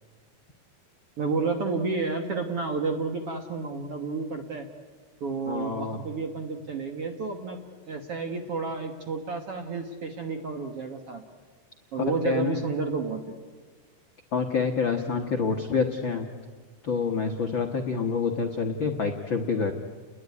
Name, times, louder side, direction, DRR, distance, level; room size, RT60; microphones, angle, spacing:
voice 1, 1.2-4.7 5.2-7.6 7.9-11.2 11.9-13.3, right 4 dB, 60° right, 5 dB, 1.6 m, -31 dB
voice 2, 5.5-6.0 12.1-12.6 14.3-16.3 16.8-19.7, left 5 dB, 85° left, 4 dB, 1.0 m, -27 dB
30.0 x 20.5 x 9.5 m, 1.5 s
omnidirectional pair, 4.4 m